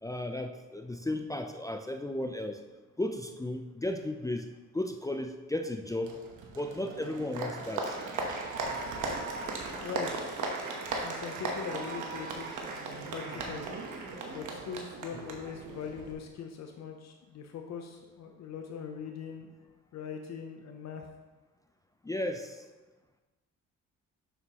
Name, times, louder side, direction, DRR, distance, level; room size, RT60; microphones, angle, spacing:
voice 1, 0.0-2.6 3.0-4.5 4.7-6.2 6.5-8.0 22.0-22.6, left 1 dB, 10° left, 5 dB, 0.4 m, -34 dB
Applause, 6.0-16.1, right 3 dB, 80° right, 1.1 m, -37 dB
voice 2, 9.8-10.3 11.0-12.6 12.9-13.6 14.3-19.5 19.9-21.0, left 6 dB, 60° left, 4 dB, 0.7 m, -41 dB
6.7 x 6.7 x 2.9 m, 1.2 s
cardioid pair, 90°, 30 cm